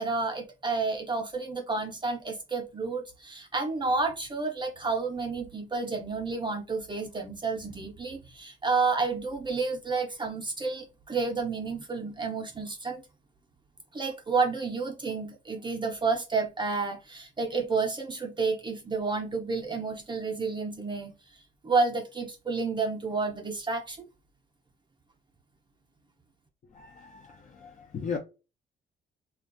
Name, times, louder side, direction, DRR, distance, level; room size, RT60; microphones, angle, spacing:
voice 1, 0.0-13.0 13.9-21.2 21.6-24.1, right 4 dB, 25° right, 0.5 m, -30 dB
voice 2, 26.6-28.2, left 6 dB, 40° left, 0.5 m, -37 dB
2.4 x 2.2 x 2.5 m
cardioid pair, 90°, 20 cm